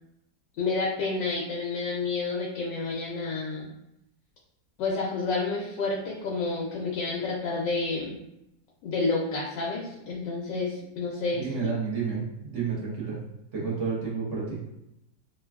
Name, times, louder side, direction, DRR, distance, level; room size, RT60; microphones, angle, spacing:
voice 1, 0.6-3.7 4.8-8.2 8.8-11.5, left 3 dB, 90° left, -5 dB, 1.2 m, -29 dB
voice 2, 11.4-13.2 13.5-14.6, right 5 dB, 50° right, -5 dB, 1.0 m, -30 dB
3.3 x 2.2 x 2.3 m, 0.85 s
omnidirectional pair, 1.9 m